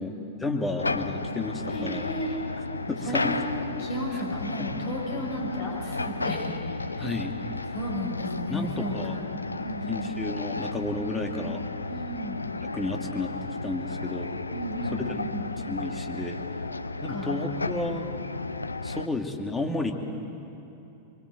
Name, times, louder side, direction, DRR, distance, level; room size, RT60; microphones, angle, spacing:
voice 1, 0.0-2.1 2.9-3.3 4.6-4.7 7.0-7.3 8.5-9.2 9.9-11.6 12.7-13.3 13.6-14.3 14.9-15.1 15.7-16.4 17.0-18.1 18.8-19.9, left 2 dB, 15° left, 3 dB, 2.5 m, -32 dB
sound 1, 0.8-19.1, left 3 dB, 85° left, 0.6 m, -33 dB
voice 2, 1.7-2.4 3.0-3.5 3.8-6.6 7.0-7.1 7.7-9.2 9.6-10.1 11.8-12.4 14.5-15.5 17.1-17.5, equal, 45° left, -1 dB, 6.5 m, -34 dB
24.5 x 23.5 x 8.1 m, 2.9 s
figure-of-eight pair, 90°, 0 cm